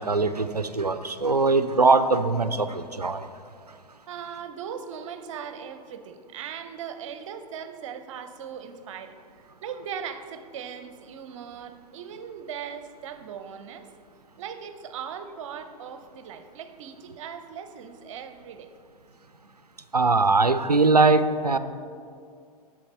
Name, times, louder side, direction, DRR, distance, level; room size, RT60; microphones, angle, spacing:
voice 1, 0.0-3.3 19.9-21.6, right 3 dB, 90° right, 12 dB, 0.5 m, -21 dB
voice 2, 4.1-13.9 14.4-18.7, right 7 dB, 55° right, 9 dB, 0.8 m, -39 dB
10.5 x 7.5 x 4.4 m, 2.2 s
figure-of-eight pair, 95°, 20 cm